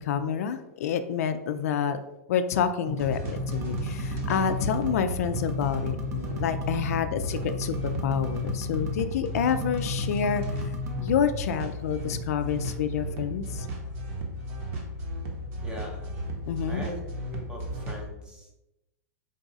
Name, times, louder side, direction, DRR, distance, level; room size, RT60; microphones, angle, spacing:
voice 1, 0.0-2.0 2.3-7.7 8.0-10.4 11.0-13.7 16.5-16.9, left 7 dB, 75° left, 10 dB, 0.3 m, -28 dB
sound 1, 2.9-11.4, left 1 dB, 85° right, 0.7 m, -34 dB
sound 2, 3.0-18.1, equal, 45° right, 0.9 m, -35 dB
voice 2, 15.6-16.1 16.7-17.0 17.3-18.6, equal, 10° right, 0 dB, 0.7 m, -40 dB
3.9 x 2.4 x 3.9 m, 0.95 s
supercardioid pair, 155°, 8 cm